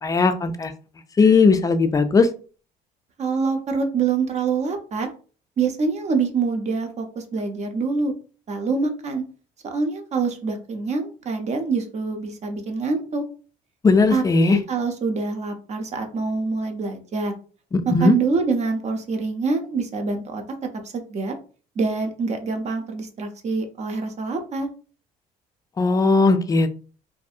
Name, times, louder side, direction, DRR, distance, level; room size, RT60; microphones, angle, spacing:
voice 1, 0.0-0.7 1.2-2.3 13.8-14.6 17.7-18.1 25.8-26.7, left 4 dB, 20° left, 9 dB, 0.3 m, -17 dB
voice 2, 3.2-5.1 5.6-8.1 8.5-9.2 9.6-13.2 14.1-17.4 17.9-20.4 20.9-21.3 21.8-24.7, right 4 dB, 40° right, 4 dB, 0.6 m, -25 dB
2.6 x 2.6 x 2.4 m, 0.38 s
cardioid pair, 110°, 17 cm